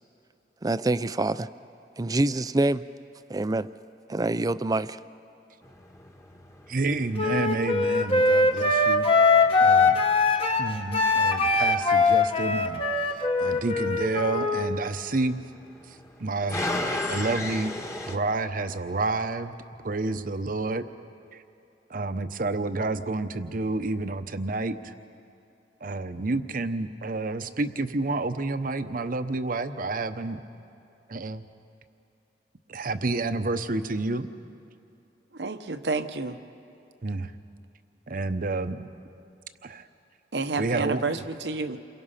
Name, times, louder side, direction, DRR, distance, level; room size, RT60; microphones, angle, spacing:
voice 1, 0.6-1.5 2.0-2.8 3.3-3.7 4.1-5.0, right 2 dB, 20° right, 14 dB, 0.4 m, -25 dB
sound 1, 5.6-18.2, left 1 dB, 15° left, 1.4 m, -38 dB
voice 2, 6.7-9.1 9.6-10.0 10.6-15.4 15.9-17.7 18.1-19.5 19.8-20.8 21.3-21.4 21.9-24.9 25.8-30.4 31.1-31.4 32.7-34.3 37.0-37.3 38.1-38.9 39.6-39.9 40.6-41.2, right 2 dB, 50° right, 10 dB, 0.9 m, -29 dB
Wind instrument woodwind instrument, 7.2-14.7, left 3 dB, 35° left, 1.2 m, -22 dB
voice 3, 35.3-36.4 40.3-41.8, right 3 dB, 75° right, 9 dB, 1.0 m, -30 dB
28.5 x 23.0 x 5.7 m, 2.7 s
head